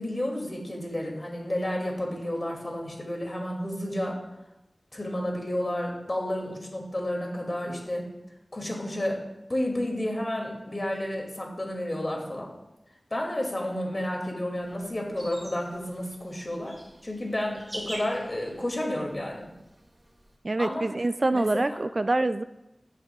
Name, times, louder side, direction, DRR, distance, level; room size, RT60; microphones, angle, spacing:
voice 1, 0.0-4.2 4.9-8.1 8.5-9.2 9.5-12.5 13.1-16.8 17.0-19.5 20.6-20.9 21.3-21.8, left 1 dB, 40° left, 0 dB, 2.5 m, -31 dB
sound 1, 14.5-20.4, right 1 dB, 30° right, 1.6 m, -45 dB
voice 2, 20.4-22.4, right 2 dB, 50° right, 11 dB, 0.3 m, -25 dB
15.0 x 7.4 x 2.4 m, 0.93 s
wide cardioid pair, 65°, 0 cm